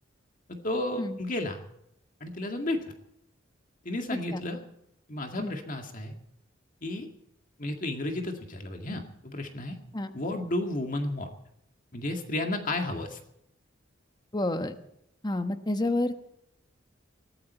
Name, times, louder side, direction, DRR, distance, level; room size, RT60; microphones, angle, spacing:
voice 1, 0.5-1.6 2.2-2.8 3.8-4.6 5.1-6.1 6.8-7.1 7.6-9.8 10.1-11.3 11.9-13.2, left 1 dB, 45° left, 4 dB, 2.1 m, -32 dB
voice 2, 14.3-14.7 15.2-16.2, left 1 dB, 20° left, 8 dB, 1.2 m, -29 dB
21.5 x 14.0 x 4.4 m, 0.78 s
head